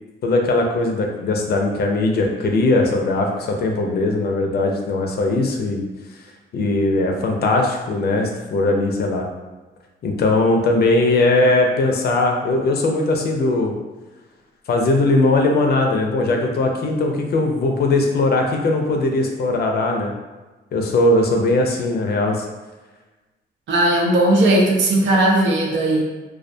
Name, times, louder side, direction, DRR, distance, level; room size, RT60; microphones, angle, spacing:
voice 1, 0.2-5.8 6.5-9.3 10.0-13.7 14.7-20.1 20.7-22.4, left 2 dB, 55° left, 2 dB, 0.5 m, -19 dB
voice 2, 23.7-26.0, right 1 dB, 70° right, -1 dB, 0.6 m, -17 dB
2.3 x 2.1 x 2.6 m, 1.2 s
cardioid pair, 90°, 20 cm